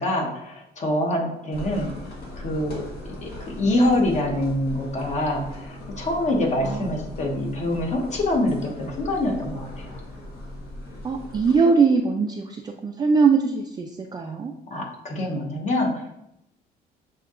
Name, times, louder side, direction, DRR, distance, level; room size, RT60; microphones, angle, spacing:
voice 1, 0.0-1.9 2.4-2.8 3.2-10.0 14.7-16.1, left 1 dB, 45° left, 1 dB, 1.1 m, -25 dB
sound 1, 1.5-11.6, left 1 dB, 65° left, 1.3 m, -38 dB
voice 2, 11.0-14.5, right 5 dB, 25° right, 3 dB, 0.3 m, -21 dB
6.9 x 2.8 x 2.4 m, 0.82 s
cardioid pair, 110°, 17 cm